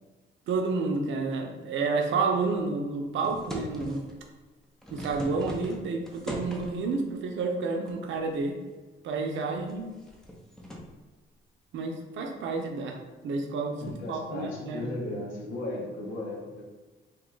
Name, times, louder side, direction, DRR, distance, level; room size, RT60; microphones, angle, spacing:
voice 1, 0.5-4.0 4.9-8.6 9.0-9.9 11.7-13.0 13.2-14.9, right 4 dB, 70° right, 3 dB, 0.6 m, -30 dB
sound 1, 3.2-4.2 4.6-6.9 7.9-8.4 8.8-8.9 9.5-10.9 13.8-14.1, equal, 5° left, 0.6 m, -40 dB
voice 2, 13.8-16.6, left 1 dB, 75° left, -1 dB, 0.9 m, -36 dB
2.8 x 2.2 x 3.8 m, 1.3 s
cardioid pair, 90°, 20 cm